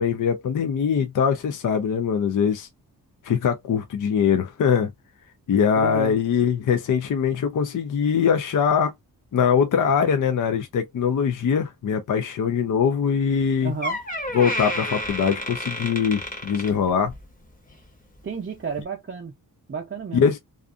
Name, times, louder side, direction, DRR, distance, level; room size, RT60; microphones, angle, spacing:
voice 1, 0.0-2.7 3.2-4.9 5.5-8.9 9.3-13.8 14.3-17.1 20.1-20.4, left 7 dB, 55° left, 0.5 m, -22 dB
voice 2, 5.8-6.2 13.6-14.0 18.2-19.3 19.7-20.2, right 5 dB, 30° right, 0.6 m, -32 dB
Door, 13.3-13.5 13.8-17.3 17.7-17.9 18.7-18.8, left 1 dB, 20° left, 0.9 m, -31 dB
2.5 x 2.4 x 2.4 m
wide cardioid pair, 140°, 38 cm